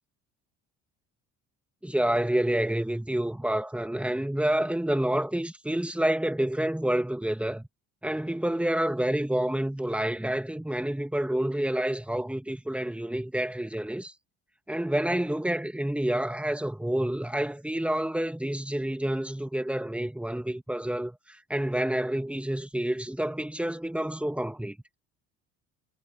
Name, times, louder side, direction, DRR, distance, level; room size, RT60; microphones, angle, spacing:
voice 1, 1.8-7.7 8.0-14.1 14.7-24.8, right 1 dB, 5° right, 2.0 m, -28 dB
supercardioid pair, 80°, 33 cm